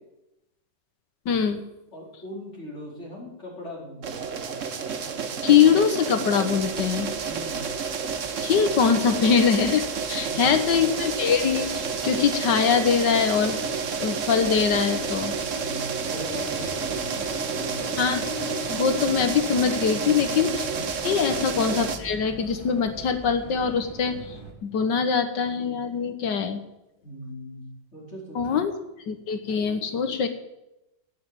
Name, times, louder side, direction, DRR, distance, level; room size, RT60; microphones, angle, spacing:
voice 1, 1.2-1.6 5.4-7.1 8.4-13.6 14.0-15.3 18.0-18.2 18.7-20.7 21.0-26.6 28.3-28.7 29.1-30.3, left 6 dB, 75° left, 9 dB, 1.7 m, -23 dB
voice 2, 1.9-4.2 7.3-7.7 10.3-10.8 15.6-17.9 21.2-21.4 27.0-28.6, equal, 40° left, -4 dB, 4.8 m, -39 dB
sound 1, 4.0-22.0, right 5 dB, 50° right, 1.3 m, -30 dB
sound 2, 6.6-24.5, equal, 15° right, 1.9 m, -45 dB
sound 3, 10.8-20.7, left 4 dB, 75° right, 4.6 m, -41 dB
17.5 x 6.8 x 8.8 m, 0.93 s
omnidirectional pair, 1.9 m